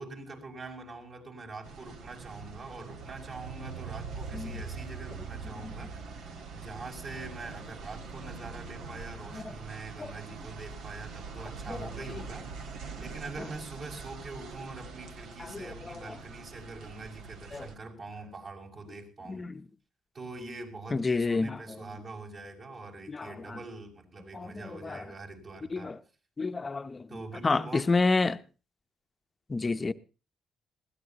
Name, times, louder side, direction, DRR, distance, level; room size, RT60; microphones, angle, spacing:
voice 1, 0.0-19.4 20.1-25.9 27.1-27.9, right 3 dB, 50° right, 6.1 m, -44 dB
sound 1, 1.6-17.8, right 4 dB, 80° right, 1.7 m, -43 dB
voice 2, 15.4-16.2 17.5-17.7 19.3-19.6 20.9-21.9 23.1-23.6 24.3-25.0 25.7-26.0 26.4-27.1 27.4-28.4 29.5-29.9, left 3 dB, 30° left, 0.8 m, -30 dB
21.5 x 16.5 x 2.9 m
cardioid pair, 90°, 0 cm